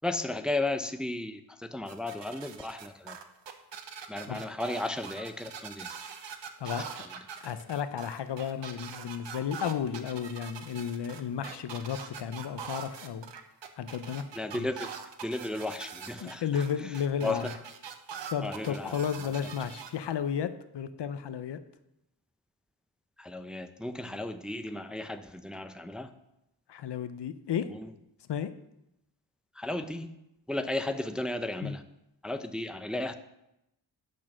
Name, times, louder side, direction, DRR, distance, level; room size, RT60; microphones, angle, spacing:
voice 1, 0.0-3.2 4.1-5.9 6.8-6.9 14.3-14.9 15.2-16.5 16.8-16.9 17.2-17.6 18.4-19.3 23.2-26.1 27.5-27.9 29.5-30.2 30.5-31.8 32.2-33.1, left 2 dB, ahead, 8 dB, 0.6 m, -34 dB
sound 1, 1.9-19.9, right 7 dB, 75° right, 1.0 m, -43 dB
voice 2, 7.4-13.3 13.8-14.2 14.5-14.7 16.2-17.5 18.3-21.6 26.7-27.7 28.3-28.5 31.6-31.7, left 8 dB, 65° left, 12 dB, 0.7 m, -33 dB
8.6 x 6.3 x 6.1 m, 0.87 s
cardioid pair, 70°, 44 cm